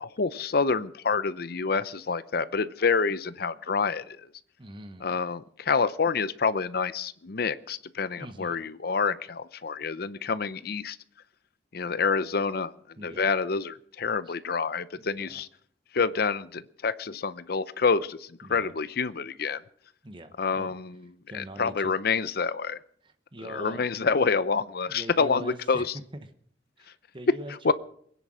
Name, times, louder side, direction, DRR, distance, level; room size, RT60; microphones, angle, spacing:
voice 1, 0.0-4.2 5.0-11.0 11.7-12.7 13.0-15.5 15.9-19.6 20.4-20.9 21.3-22.8 23.4-25.9 27.6-27.7, left 5 dB, 60° left, 15 dB, 0.7 m, -27 dB
voice 2, 4.6-5.2 8.2-8.6 13.0-13.3 14.2-14.3 15.0-15.4 18.4-18.8 20.0-20.8 21.3-21.9 23.0-23.9 24.9-25.9 26.1-26.3 26.8-27.7, right 1 dB, 30° right, 9 dB, 1.1 m, -43 dB
22.5 x 10.0 x 6.3 m, 0.63 s
head